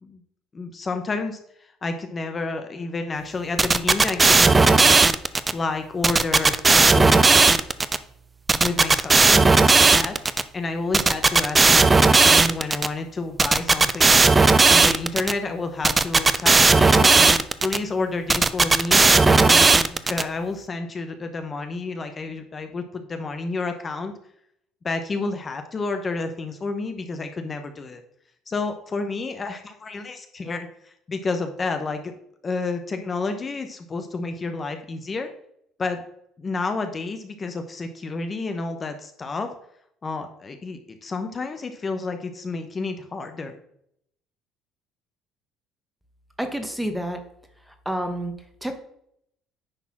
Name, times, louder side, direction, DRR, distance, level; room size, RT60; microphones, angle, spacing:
voice 1, 0.5-4.9 5.5-7.5 8.5-10.2 10.5-14.3 14.7-24.1 24.8-28.0 28.5-32.1 32.4-35.3 35.8-36.0 36.4-39.5 40.0-43.6, left 3 dB, 30° left, 6 dB, 0.9 m, -30 dB
sound 1, 3.6-5.5 6.0-8.0 8.5-10.4 10.9-12.9 13.4-15.3 15.8-17.8 18.3-20.2, right 3 dB, 20° right, 0.5 m, -16 dB
voice 2, 46.4-47.2 47.8-48.3 48.6-48.8, right 1 dB, 5° right, 7 dB, 1.3 m, -28 dB
9.8 x 4.1 x 6.0 m, 0.72 s
cardioid pair, 110°, 0 cm